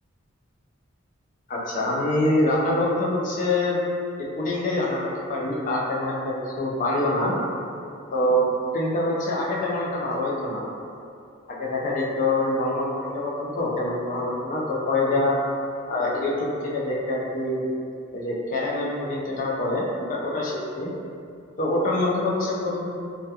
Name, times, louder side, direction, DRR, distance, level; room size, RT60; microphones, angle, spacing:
voice 1, 1.5-3.8 4.2-7.3 8.1-8.4 8.7-10.6 11.5-15.4 15.9-17.6 18.1-20.9 21.6-22.9, left 1 dB, 40° left, -4 dB, 0.4 m, -25 dB
2.3 x 2.2 x 2.7 m, 2.5 s
head